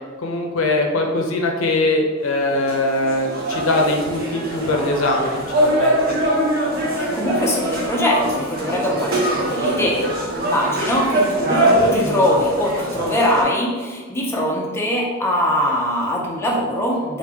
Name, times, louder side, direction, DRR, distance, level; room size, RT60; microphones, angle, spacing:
voice 1, 0.2-6.2, left 2 dB, 80° left, 2 dB, 0.5 m, -21 dB
sound 1, 2.3-13.4, right 1 dB, 50° right, 0.7 m, -22 dB
voice 2, 6.9-10.1 10.4-17.2, equal, 10° left, -3 dB, 0.5 m, -22 dB
3.1 x 2.5 x 3.5 m, 1.4 s
head